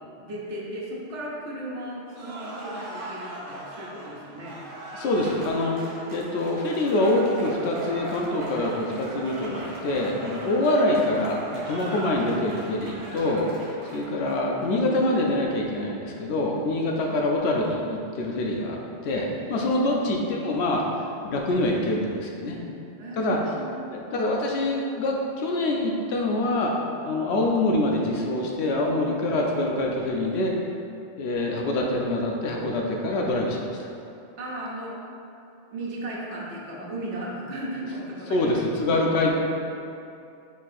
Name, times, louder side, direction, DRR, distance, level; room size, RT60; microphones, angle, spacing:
voice 1, 0.2-4.6 19.6-20.1 23.0-23.9 34.4-35.0 35.7-38.5 39.0-39.1, right 1 dB, 75° right, -4 dB, 1.1 m, -36 dB
Cheering / Applause, 2.1-14.7, right 1 dB, 55° right, 0.7 m, -39 dB
voice 2, 4.9-5.8 6.1-18.8 19.0-20.9 21.2-22.6 23.2-23.4 23.9-26.8 27.1-30.5 31.2-33.9 38.3-39.3, left 1 dB, 70° left, -1 dB, 0.8 m, -25 dB
4.1 x 2.7 x 4.1 m, 2.7 s
omnidirectional pair, 1.2 m